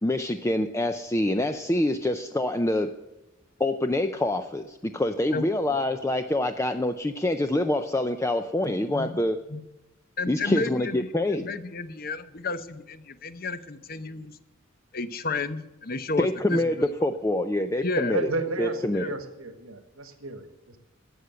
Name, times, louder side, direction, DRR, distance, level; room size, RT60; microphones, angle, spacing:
voice 1, 0.0-2.9 3.6-9.4 10.3-11.5 16.2-18.3 18.6-19.0, left 1 dB, 15° left, 8 dB, 0.4 m, -26 dB
voice 2, 8.7-9.1 9.5-9.6 10.2-14.3 14.9-16.6 17.8-18.1 18.9-19.1, left 3 dB, 45° left, 12 dB, 0.8 m, -32 dB
voice 3, 18.1-20.8, right 2 dB, 90° right, 8 dB, 1.6 m, -32 dB
12.5 x 8.3 x 7.9 m, 1.0 s
head